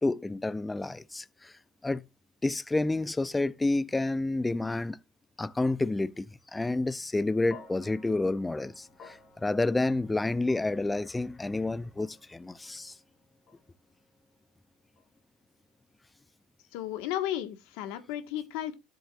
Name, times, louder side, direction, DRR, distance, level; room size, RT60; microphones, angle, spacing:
voice 1, 0.0-1.5 1.8-2.0 2.4-5.0 5.4-12.9, left 2 dB, 10° left, 0.4 m, -29 dB
sound 1, 7.5-15.8, left 4 dB, 30° left, 3.1 m, -55 dB
voice 2, 16.7-18.7, left 12 dB, 75° left, 1.5 m, -34 dB
12.5 x 7.7 x 2.5 m
cardioid pair, 145°, 0 cm